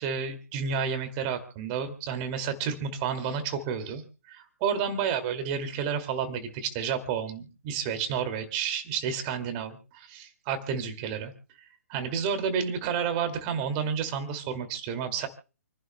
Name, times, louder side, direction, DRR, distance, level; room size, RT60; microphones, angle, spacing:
voice 1, 0.0-4.0 4.3-11.3 11.9-15.3, right 7 dB, 30° right, 8 dB, 2.4 m, -30 dB
29.0 x 11.5 x 2.2 m, 0.36 s
figure-of-eight pair, 130°, 8 cm